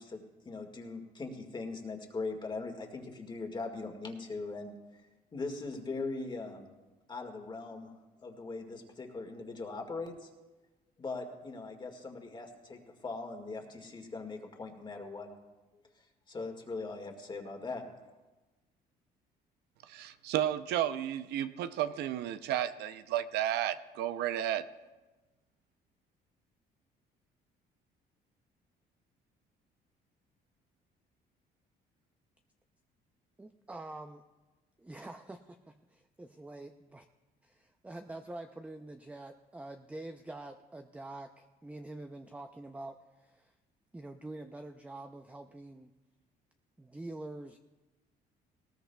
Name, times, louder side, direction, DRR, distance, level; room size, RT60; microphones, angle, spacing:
voice 1, 0.0-5.0 5.3-6.7 7.1-10.3 11.0-15.3 16.3-17.8, left 3 dB, 25° left, 4 dB, 1.8 m, -40 dB
voice 2, 19.9-24.7, right 11 dB, 75° right, 11 dB, 0.6 m, -32 dB
voice 3, 33.4-34.2 34.8-37.1 37.4-43.5 43.9-45.9 46.8-47.6, right 2 dB, 10° right, 6 dB, 0.5 m, -46 dB
19.5 x 17.5 x 2.3 m, 1.2 s
cardioid pair, 110°, 17 cm